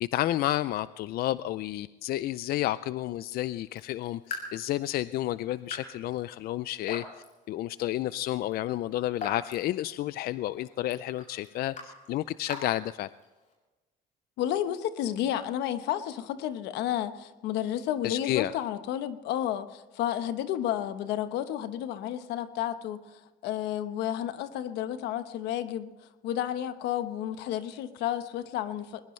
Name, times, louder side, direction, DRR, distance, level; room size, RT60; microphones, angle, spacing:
voice 1, 0.0-7.0 7.5-13.1 18.0-18.6, left 14 dB, 65° left, 16 dB, 0.4 m, -31 dB
Raindrop / Drip, 3.6-13.5, left 3 dB, 50° left, 7.5 m, -45 dB
voice 2, 14.4-25.9 26.2-29.0, left 11 dB, 90° left, 11 dB, 1.1 m, -31 dB
21.0 x 21.0 x 3.2 m, 1.1 s
cardioid pair, 110°, 17 cm